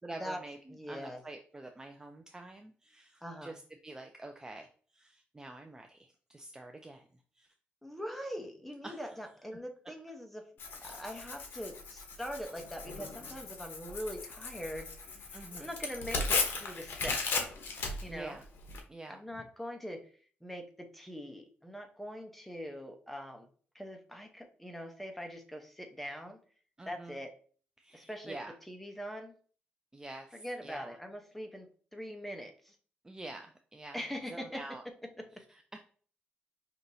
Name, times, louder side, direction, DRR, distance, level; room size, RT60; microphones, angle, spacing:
voice 1, 0.0-4.7 4.9-7.1 7.4-7.5 8.8-9.2 15.3-15.7 18.1-18.4 18.9-19.5 26.8-27.2 27.8-28.5 29.9-31.0 33.0-34.8 35.3-35.8, right 2 dB, 15° right, 4 dB, 0.4 m, -47 dB
voice 2, 0.7-1.2 3.2-3.5 7.8-10.5 10.8-17.5 18.0-18.4 19.1-20.1 20.4-23.5 23.7-26.4 26.9-27.3 27.9-28.4 28.7-29.3 30.3-32.7 33.9-34.6, equal, 5° left, 4 dB, 0.8 m, -42 dB
Tearing, 10.6-18.8, left 4 dB, 65° left, 0.9 m, -37 dB
5.4 x 2.9 x 2.7 m, 0.43 s
cardioid pair, 110°, 4 cm